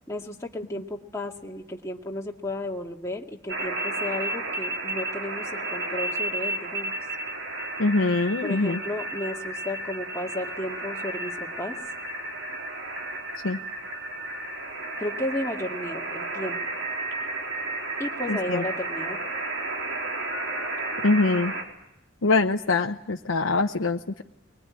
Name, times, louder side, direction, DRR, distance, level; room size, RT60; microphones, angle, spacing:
voice 1, 0.1-6.9 8.4-11.8 15.0-16.6 18.0-19.2, left 1 dB, 15° left, 0 dB, 2.1 m, -33 dB
sound 1, 3.5-21.6, right 2 dB, 65° right, 4.3 m, -32 dB
voice 2, 7.8-8.8 13.4-13.6 18.3-18.6 21.0-21.5 22.2-24.2, left 3 dB, 80° left, 3 dB, 0.9 m, -23 dB
23.0 x 22.0 x 9.8 m, 0.84 s
head